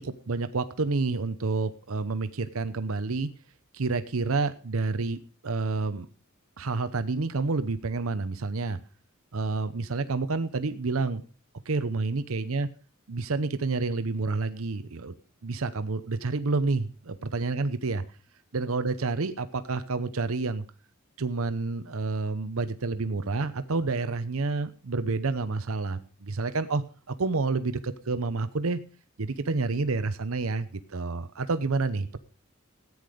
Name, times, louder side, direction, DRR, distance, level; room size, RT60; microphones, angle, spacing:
voice 1, 0.0-3.3 3.7-6.1 6.6-8.8 9.3-11.2 11.7-12.7 13.1-15.1 15.4-18.0 18.5-20.6 21.2-28.8 29.2-32.2, right 3 dB, 85° right, 12 dB, 0.8 m, -29 dB
14.0 x 9.6 x 5.0 m, 0.37 s
head